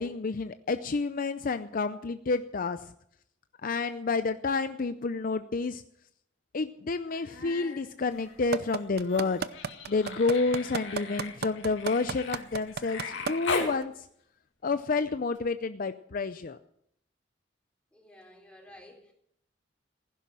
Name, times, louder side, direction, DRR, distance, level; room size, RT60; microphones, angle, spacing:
voice 1, 0.0-2.8 3.6-5.8 6.5-9.5 9.9-13.9 14.6-16.6, left 4 dB, 50° left, 11 dB, 0.5 m, -29 dB
Human voice, 7.1-7.8 8.2-13.8 15.4-15.5, left 4 dB, 75° left, 2.5 m, -38 dB
sound 1, 8.5-13.3 13.8-13.9, right 5 dB, 60° right, 0.7 m, -31 dB
voice 2, 17.9-19.1, left 1 dB, 5° left, 0 dB, 3.9 m, -52 dB
15.5 x 11.0 x 7.5 m, 0.72 s
head